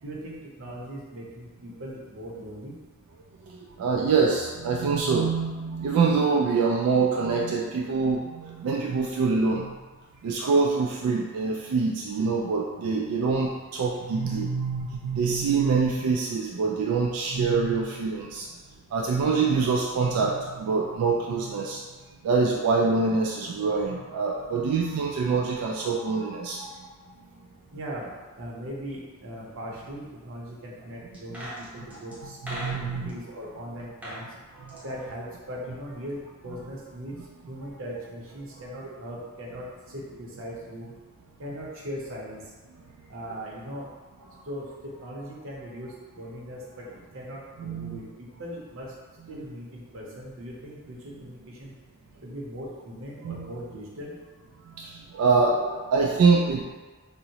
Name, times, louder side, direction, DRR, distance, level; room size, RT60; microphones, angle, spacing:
voice 1, 0.0-2.8 14.3-14.4 27.7-34.3 34.8-37.2 37.5-40.9 41.4-42.5 43.1-43.9 44.4-48.9 49.3-51.7 52.2-54.1, equal, 65° right, -4 dB, 0.7 m, -39 dB
voice 2, 3.5-9.8 10.2-18.5 18.9-21.8 22.2-26.9 32.4-33.1 34.6-34.8 47.6-48.0 53.2-53.4 54.6-56.6, right 4 dB, 85° right, -2 dB, 0.3 m, -25 dB
sound 1, 31.1-33.2 33.8-34.2 34.5-35.9 36.2-36.3, equal, 5° right, 0.6 m, -40 dB
3.6 x 2.0 x 2.8 m, 1.3 s
head